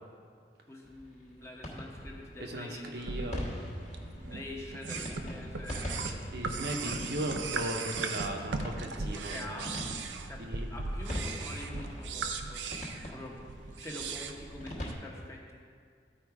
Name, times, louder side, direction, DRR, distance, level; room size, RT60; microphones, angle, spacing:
voice 1, 0.7-3.2 4.1-6.2 6.8-7.2 8.5-15.5, left 1 dB, 15° left, -2 dB, 0.9 m, -46 dB
sound 1, 0.9-14.9, equal, 40° left, 1.3 m, -43 dB
voice 2, 2.4-3.4 6.3-9.7 10.4-10.7, right 1 dB, 60° right, 1 dB, 0.9 m, -37 dB
sound 2, 2.9-14.9, right 4 dB, 85° right, 0.6 m, -38 dB
13.0 x 4.5 x 4.7 m, 2.1 s
head